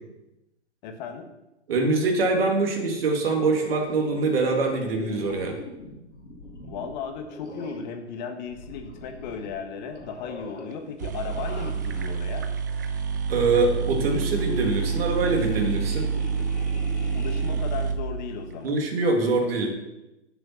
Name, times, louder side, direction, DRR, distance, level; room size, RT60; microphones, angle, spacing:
voice 1, 0.8-1.3 6.6-12.5 17.1-18.8, left 6 dB, 40° left, 6 dB, 1.6 m, -35 dB
voice 2, 1.7-5.6 13.3-16.1 18.6-19.8, right 3 dB, 55° right, 2 dB, 2.5 m, -24 dB
sound 1, 3.4-8.0 8.5-9.6 9.9-10.7 11.2-12.2 12.9-17.6, left 3 dB, 75° left, 2.2 m, -41 dB
sound 2, 10.7-10.8 11.0-18.8, right 6 dB, 20° right, 0.3 m, -28 dB
9.1 x 7.0 x 5.8 m, 0.95 s
figure-of-eight pair, 120°, 35 cm